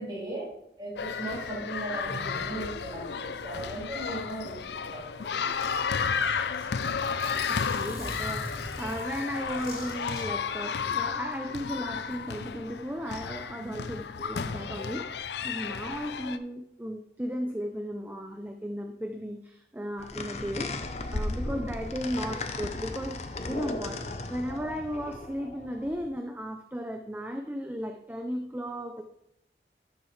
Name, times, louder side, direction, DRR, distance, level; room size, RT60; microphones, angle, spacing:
voice 1, 0.0-5.2 13.6-13.7 21.5-21.6, right 1 dB, 25° right, -7 dB, 3.6 m, -38 dB
sound 1, 1.0-16.4, left 6 dB, 75° left, 0.5 m, -33 dB
Zipper (clothing), 5.6-10.2, left 1 dB, 20° left, 3.8 m, -42 dB
voice 2, 7.2-15.1 15.4-20.7 21.1-29.0, equal, 10° right, 5 dB, 0.5 m, -35 dB
sound 2, 20.0-26.1, left 2 dB, 35° left, 0.7 m, -36 dB
12.5 x 7.0 x 3.2 m, 0.78 s
head